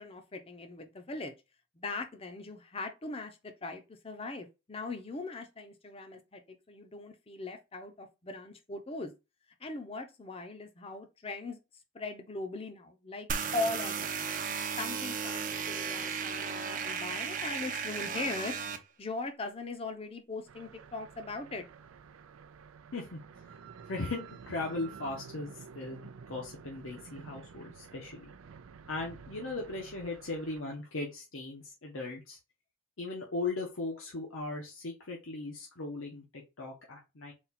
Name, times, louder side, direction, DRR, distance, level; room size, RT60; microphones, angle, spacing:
voice 1, 0.0-1.3 1.7-9.1 9.6-11.6 11.9-13.3 13.5-14.3 14.8-18.5 19.0-21.7, left 3 dB, 30° left, 0.6 m, -40 dB
sound 1, 13.3-18.8, right 6 dB, 40° right, 0.6 m, -35 dB
sound 2, 20.5-30.6, right 6 dB, 85° right, 0.4 m, -51 dB
voice 2, 22.9-23.5 23.9-26.0 26.3-28.3 28.9-32.4 33.0-37.3, left 3 dB, 75° left, 0.9 m, -38 dB
4.2 x 2.3 x 4.1 m
head